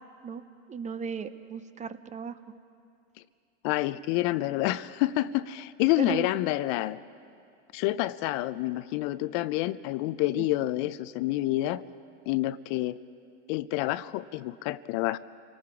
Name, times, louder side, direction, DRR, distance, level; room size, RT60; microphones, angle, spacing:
voice 1, 0.7-2.4 6.0-6.3 10.4-10.5, right 7 dB, 20° right, 12 dB, 0.6 m, -35 dB
voice 2, 3.6-7.0 7.7-11.8 12.3-13.0 13.5-15.2, left 16 dB, 50° left, 16 dB, 0.5 m, -28 dB
29.0 x 18.5 x 4.8 m, 2.4 s
hypercardioid pair, 115°, 35 cm